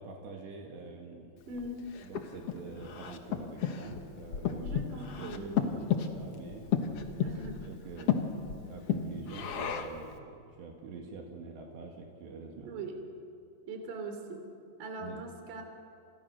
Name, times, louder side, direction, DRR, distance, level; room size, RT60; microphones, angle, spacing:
voice 1, 0.0-1.6 2.0-4.8 5.1-8.1 8.7-12.8 15.0-15.2, right 4 dB, 70° right, 1 dB, 4.3 m, -46 dB
voice 2, 1.5-1.9 4.6-5.6 7.1-7.6 12.6-13.0 13.7-14.4 14.8-15.6, right 2 dB, 50° right, 5 dB, 4.4 m, -41 dB
Breathing, 1.6-10.1, left 8 dB, 75° left, 1.4 m, -34 dB
29.5 x 28.5 x 6.6 m, 2.5 s
omnidirectional pair, 5.2 m